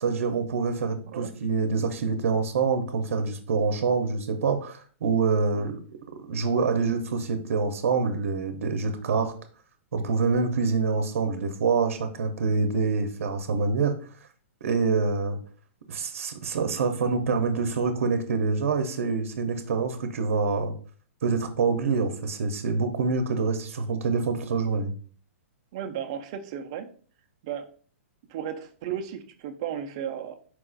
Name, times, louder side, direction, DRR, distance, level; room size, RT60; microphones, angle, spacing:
voice 1, 0.0-6.0 6.3-9.3 9.9-13.9 14.6-15.4 15.9-20.8 21.2-24.9, right 4 dB, 70° right, 7 dB, 0.6 m, -26 dB
voice 2, 25.7-26.9 27.4-27.7 28.3-30.3, right 9 dB, 25° right, 6 dB, 0.4 m, -34 dB
4.6 x 2.3 x 3.8 m, 0.44 s
hypercardioid pair, 180°, 7 cm